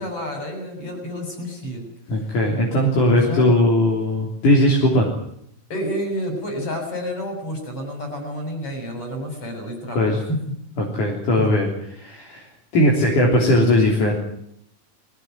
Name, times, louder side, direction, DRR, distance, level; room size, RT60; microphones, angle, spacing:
voice 1, 0.0-1.8 2.2-2.4 3.1-3.5 5.7-10.5 11.4-11.5, equal, 45° left, 3 dB, 8.4 m, -29 dB
voice 2, 2.1-5.1 9.9-10.2 10.8-12.4 12.7-14.1, left 1 dB, 70° left, -1 dB, 5.0 m, -18 dB
21.5 x 17.5 x 9.5 m, 0.72 s
omnidirectional pair, 3.8 m